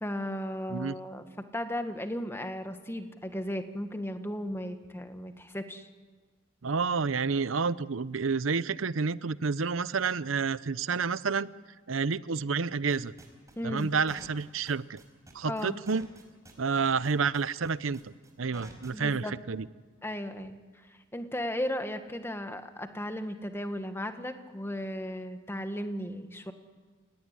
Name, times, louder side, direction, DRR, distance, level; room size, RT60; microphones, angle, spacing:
voice 1, 0.0-1.3 1.5-5.9 13.6-13.9 15.4-15.8 18.9-19.3 20.0-20.6 20.9-26.5, left 1 dB, 10° left, 7 dB, 1.7 m, -35 dB
voice 2, 6.6-11.5 11.9-13.1 13.6-15.0 15.3-16.1 16.6-19.7, right 5 dB, 75° right, 17 dB, 0.7 m, -29 dB
sound 1, 12.9-19.2, right 2 dB, 15° right, 4.7 m, -51 dB
29.5 x 18.0 x 9.8 m, 1.4 s
head